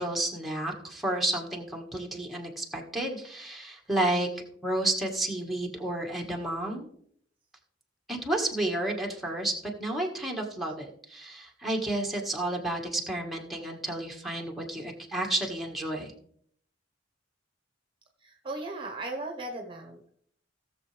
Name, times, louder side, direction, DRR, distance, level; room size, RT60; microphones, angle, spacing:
voice 1, 0.0-4.3 4.6-6.9 8.1-9.5 9.8-16.1, right 1 dB, ahead, 0 dB, 1.7 m, -31 dB
voice 2, 18.2-20.1, right 2 dB, 25° right, 3 dB, 1.2 m, -37 dB
17.5 x 6.9 x 3.4 m, 0.64 s
head